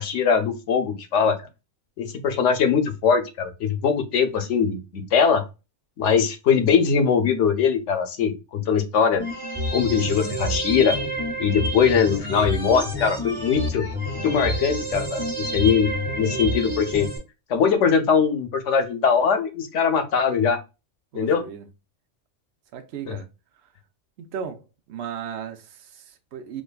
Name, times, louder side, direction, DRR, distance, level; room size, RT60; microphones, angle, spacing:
voice 1, 0.0-1.4 2.0-5.4 6.0-9.2 9.7-11.0 11.4-13.8 14.2-15.2 15.5-17.1 17.5-20.6 21.1-21.4, left 6 dB, 80° left, 1.0 m, -21 dB
sound 1, 9.2-17.2, equal, 25° right, 1.4 m, -28 dB
voice 2, 21.1-21.7 22.7-23.3 23.6-23.7 24.2-26.6, right 8 dB, 65° right, 0.8 m, -36 dB
5.0 x 2.3 x 2.2 m
omnidirectional pair, 1.2 m